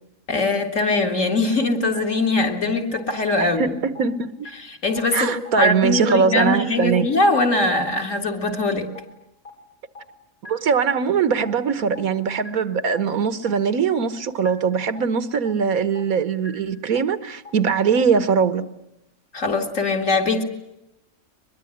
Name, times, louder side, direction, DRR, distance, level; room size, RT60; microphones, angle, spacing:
voice 1, 0.3-3.7 4.7-8.9 19.3-20.4, left 2 dB, 65° left, 2.9 m, -21 dB
sound 1, 2.5-2.6 3.0-3.1 3.5-3.6 4.0-4.1 4.4-4.5 5.0-5.1 5.5-5.6 6.0-6.1 6.4-6.5 7.0-7.1 7.5-7.6 8.0-8.1 8.4-8.5 9.0-9.1 9.5-9.6 10.0-10.1 10.4-10.5 11.0-11.1 11.5-11.6 12.0-12.1 12.4-12.5 13.0-13.1 13.5-13.6 14.0-14.1 14.4-14.5 15.0-15.1 15.5-15.6 16.0-16.1 16.4-16.5 17.0-17.1 17.5-17.6 18.0-18.1, left 3 dB, 90° left, 6.8 m, -39 dB
voice 2, 3.4-4.5 5.1-7.1 10.4-18.6, right 6 dB, 85° right, 1.7 m, -21 dB
23.0 x 22.0 x 10.0 m
omnidirectional pair, 1.4 m